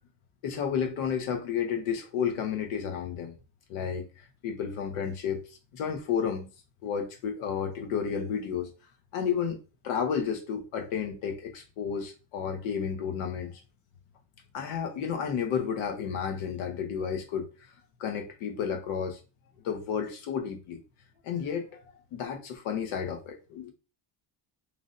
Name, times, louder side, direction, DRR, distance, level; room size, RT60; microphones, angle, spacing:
voice 1, 0.4-3.3 3.7-4.1 4.4-6.5 6.8-8.7 9.1-9.6 9.8-13.6 14.5-17.5 18.0-19.2 19.6-20.8 21.2-21.8 22.1-23.7, left 7 dB, 85° left, 0.9 m, -31 dB
3.1 x 2.6 x 2.5 m
cardioid pair, 135°, 49 cm